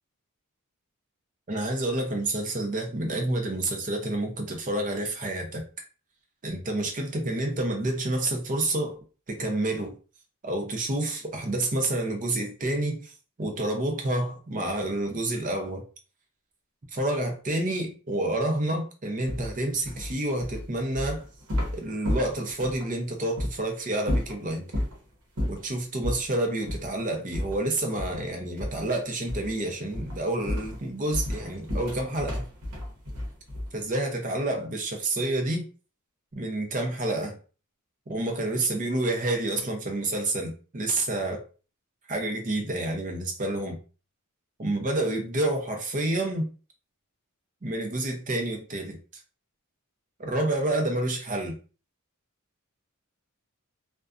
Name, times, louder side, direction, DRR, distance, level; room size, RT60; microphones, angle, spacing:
voice 1, 1.5-5.6 6.4-9.0 9.3-10.0 10.4-13.1 13.4-15.8 16.9-21.2 21.7-24.7 25.5-32.4 33.7-35.6 36.3-37.4 38.1-41.4 42.1-43.8 44.6-46.5 47.6-49.0 50.2-51.5, right 1 dB, 35° right, 0.6 m, -29 dB
sound 1, 19.2-22.9 23.4-23.5 24.0-25.0 25.4-25.7 26.0-26.3 26.7-26.9 27.3-28.3 28.6-28.9 29.3-29.6 29.9-33.9, left 1 dB, 80° right, 0.9 m, -32 dB
2.5 x 2.2 x 2.4 m
head